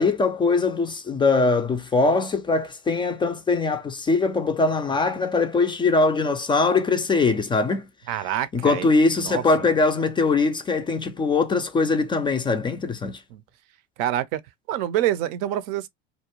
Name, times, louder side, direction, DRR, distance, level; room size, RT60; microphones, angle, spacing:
voice 1, 0.0-7.9 8.5-13.2, left 3 dB, 15° left, 0.3 m, -22 dB
voice 2, 8.1-8.9 9.2-9.7 13.3-13.4 14.0-14.4 14.7-15.9, right 12 dB, 65° right, 0.5 m, -26 dB
2.5 x 2.2 x 2.9 m
supercardioid pair, 105°, 32 cm